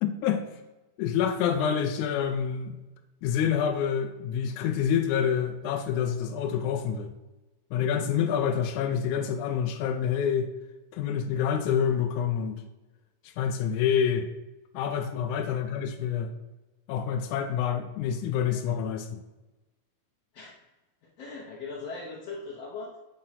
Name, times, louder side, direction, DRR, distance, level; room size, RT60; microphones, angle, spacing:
voice 1, 0.0-0.4 1.0-2.8 3.2-7.1 7.7-10.5 10.9-12.6 13.4-14.3 14.7-16.3 16.9-19.2, left 8 dB, 80° left, 5 dB, 1.9 m, -27 dB
voice 2, 21.0-23.0, left 4 dB, 65° left, -3 dB, 1.8 m, -40 dB
7.7 x 3.7 x 5.8 m, 1.1 s
omnidirectional pair, 3.8 m